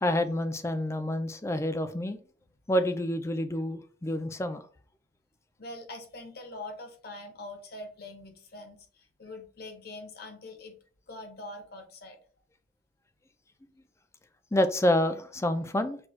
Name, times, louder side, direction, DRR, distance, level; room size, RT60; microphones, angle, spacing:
voice 1, 0.0-2.2 2.7-4.7 14.5-16.0, left 1 dB, 15° left, 0.4 m, -28 dB
voice 2, 5.6-8.8 9.2-10.8 11.1-12.2, left 2 dB, 55° left, 1.0 m, -43 dB
6.0 x 2.3 x 3.1 m
head